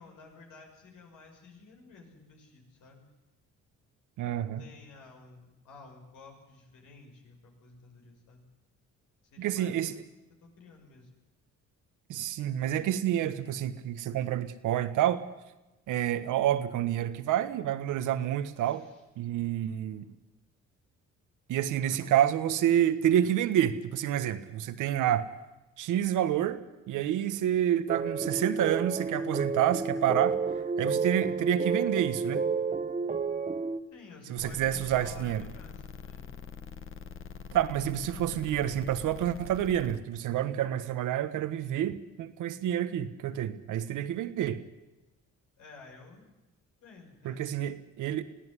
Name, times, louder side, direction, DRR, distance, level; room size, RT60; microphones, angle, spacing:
voice 1, 0.0-3.1 4.4-8.5 9.3-11.1 18.6-19.0 33.9-36.2 45.6-46.2 46.8-47.5, left 4 dB, 90° left, 2 dB, 6.3 m, -53 dB
voice 2, 4.2-4.6 9.4-9.9 12.1-15.2 15.9-18.9 19.2-20.1 21.5-25.3 25.8-26.6 26.9-30.4 30.8-32.5 34.3-35.4 37.5-44.6 47.2-48.2, right 11 dB, 85° right, 11 dB, 1.5 m, -28 dB
sound 1, 27.9-33.8, right 5 dB, 25° right, 1.3 m, -30 dB
sound 2, 34.4-40.0, left 6 dB, 45° left, 1.7 m, -44 dB
23.0 x 15.5 x 9.9 m, 1.1 s
cardioid pair, 90°, 30 cm